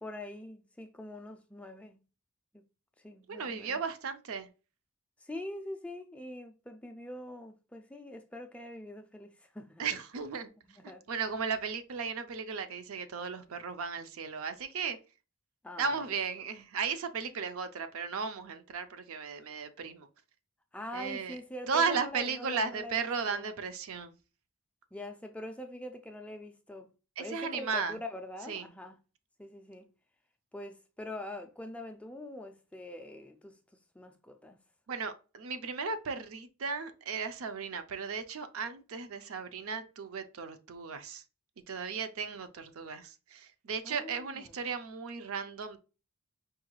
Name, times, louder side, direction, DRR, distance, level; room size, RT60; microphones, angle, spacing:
voice 1, 0.0-2.0 2.5-2.6 3.0-3.8 5.2-9.8 10.8-11.1 15.6-16.1 19.4-19.5 20.7-23.6 24.9-26.9 27.2-29.0 29.4-29.9 30.5-34.6 43.8-44.6, left 1 dB, 5° left, 0.3 m, -44 dB
voice 2, 3.3-4.5 9.8-10.5 11.1-15.0 15.8-20.1 20.9-21.4 21.7-24.1 27.2-28.0 28.5-28.7 34.9-41.2 41.7-45.8, right 5 dB, 70° right, 0.5 m, -35 dB
4.7 x 3.0 x 2.3 m
head